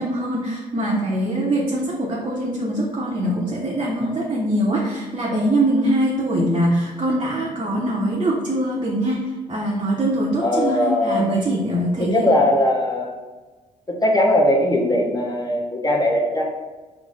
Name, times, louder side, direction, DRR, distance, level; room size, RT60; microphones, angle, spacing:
voice 1, 0.0-12.3, right 1 dB, 25° right, -3 dB, 0.8 m, -23 dB
voice 2, 10.4-11.3 12.0-13.1 13.9-16.4, left 1 dB, 20° left, -1 dB, 1.0 m, -19 dB
4.7 x 2.0 x 4.0 m, 1.2 s
hypercardioid pair, 45°, 19 cm